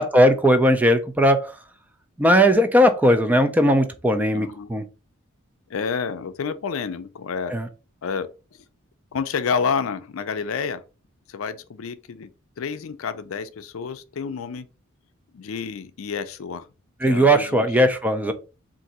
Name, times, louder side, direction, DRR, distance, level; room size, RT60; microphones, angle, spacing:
voice 1, 0.0-1.5 2.2-4.8 7.5-7.7 17.0-18.3, equal, 10° right, 0.4 m, -18 dB
voice 2, 4.3-4.7 5.7-7.6 8.0-8.3 9.1-10.8 11.3-12.3 12.6-14.7 15.3-16.7 17.1-17.7, left 6 dB, 75° left, 0.4 m, -29 dB
3.7 x 2.6 x 4.2 m
head